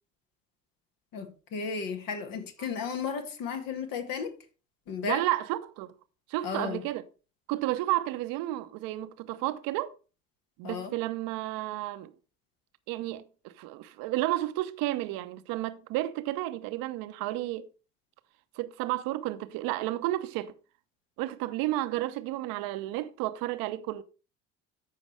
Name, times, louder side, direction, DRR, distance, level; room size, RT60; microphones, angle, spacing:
voice 1, 1.1-4.3 4.9-5.2 6.4-6.8 10.6-10.9, left 6 dB, 55° left, 1.8 m, -34 dB
voice 2, 5.0-5.9 6.3-7.0 7.5-9.9 10.6-12.1 12.9-17.7 18.6-20.5 21.2-24.0, right 16 dB, 60° right, 0.9 m, -32 dB
14.0 x 5.1 x 3.3 m
hypercardioid pair, 55°, 39 cm